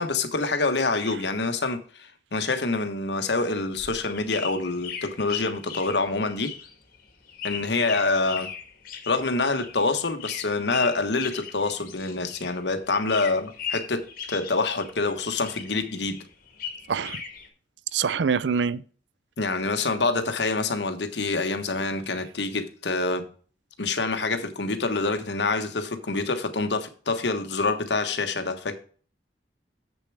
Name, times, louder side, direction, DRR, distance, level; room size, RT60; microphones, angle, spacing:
voice 1, 0.0-6.5 7.4-8.5 9.1-16.2 19.4-23.3 23.8-28.8, left 3 dB, 75° left, 1.3 m, -26 dB
sound 1, 3.6-12.6 12.9-15.1 15.4-17.5, left 7 dB, 55° left, 1.8 m, -38 dB
voice 2, 16.9-17.2 17.9-18.8, right 6 dB, 90° right, 0.5 m, -25 dB
7.6 x 6.8 x 4.8 m
head